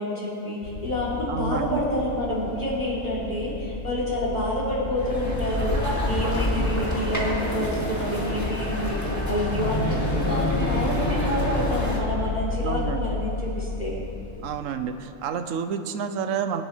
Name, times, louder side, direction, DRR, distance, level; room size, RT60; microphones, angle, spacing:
voice 1, 0.0-14.0, equal, 35° left, -7 dB, 3.5 m, -28 dB
sound 1, 0.6-14.6, left 4 dB, 70° left, 1.0 m, -32 dB
voice 2, 1.3-1.9 12.6-13.0 14.4-16.6, right 7 dB, 85° right, 9 dB, 1.1 m, -29 dB
sound 2, 5.0-12.0, equal, 15° left, 2.1 m, -28 dB
21.0 x 10.5 x 3.3 m, 2.8 s
omnidirectional pair, 1.3 m